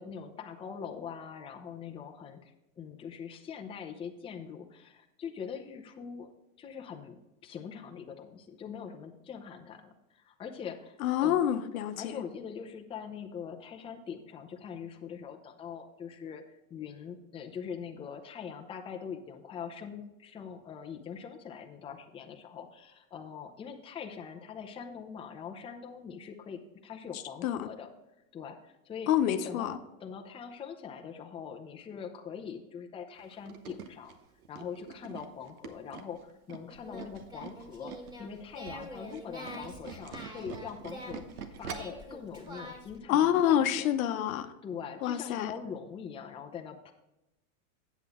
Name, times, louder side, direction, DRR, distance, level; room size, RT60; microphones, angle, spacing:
voice 1, 0.0-6.3 6.6-11.4 12.0-27.9 28.3-29.1 29.4-34.1 34.5-37.9 38.2-41.2 41.6-43.8 44.4-46.9, left 7 dB, 15° left, 0.6 m, -43 dB
voice 2, 11.0-12.2 27.4-27.7 29.1-29.8 43.1-44.5 45.0-45.5, left 10 dB, 70° left, 0.9 m, -27 dB
Tools, 33.2-38.2 38.5-42.0 42.5-42.6 42.9-43.0, right 7 dB, 85° right, 1.1 m, -45 dB
Singing, 36.7-43.0, left 1 dB, 10° right, 1.8 m, -46 dB
8.2 x 7.7 x 3.6 m
supercardioid pair, 135°, 43 cm